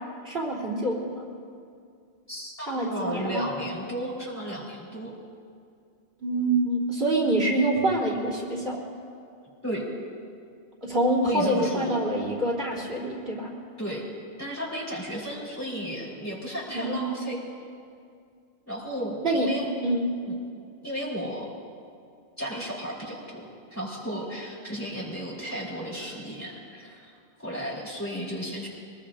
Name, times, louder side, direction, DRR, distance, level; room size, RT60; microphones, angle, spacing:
voice 1, 0.2-1.2 2.7-3.5 6.2-8.8 10.8-13.5 16.7-17.0 19.2-19.5 19.8-20.1, right 1 dB, 80° right, -4 dB, 3.4 m, -26 dB
voice 2, 2.3-5.1 9.6-9.8 11.2-11.9 13.8-14.0 14.4-17.4 18.7-19.7 20.3-20.4 20.8-21.5 22.4-27.1 27.4-28.7, equal, 15° left, -6 dB, 4.1 m, -34 dB
24.0 x 21.0 x 2.6 m, 2.3 s
omnidirectional pair, 1.0 m